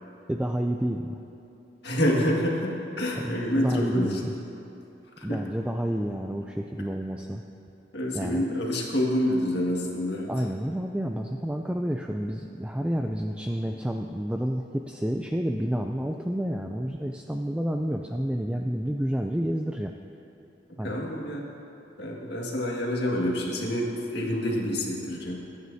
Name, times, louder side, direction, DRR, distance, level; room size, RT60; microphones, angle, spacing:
voice 1, 0.3-1.2 3.2-4.3 5.2-7.4 8.1-8.5 10.3-19.9 20.8-21.0, equal, 5° right, 3 dB, 0.3 m, -29 dB
voice 2, 1.8-4.3 5.2-5.4 7.9-10.3 20.8-21.4 22.0-25.4, left 1 dB, 60° left, -2 dB, 1.9 m, -27 dB
24.0 x 9.5 x 2.7 m, 2.9 s
head